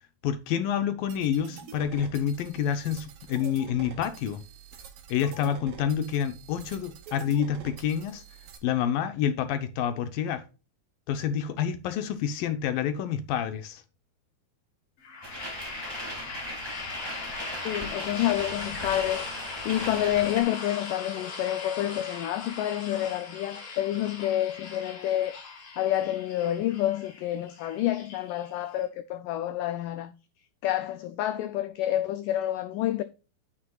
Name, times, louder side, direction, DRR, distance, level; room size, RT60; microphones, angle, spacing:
voice 1, 0.2-4.4 5.1-8.2 8.6-10.4 11.1-13.8, left 9 dB, 75° left, 2.4 m, -28 dB
sound 1, 1.1-8.6, right 7 dB, 70° right, 3.1 m, -46 dB
sound 2, 15.0-28.8, left 4 dB, 60° left, 4.2 m, -40 dB
sound 3, 15.2-20.4, right 1 dB, 15° right, 0.7 m, -39 dB
voice 2, 17.7-19.3 19.7-25.4 25.8-30.1 30.6-33.0, left 13 dB, 90° left, 1.8 m, -28 dB
9.5 x 9.2 x 2.3 m
omnidirectional pair, 4.4 m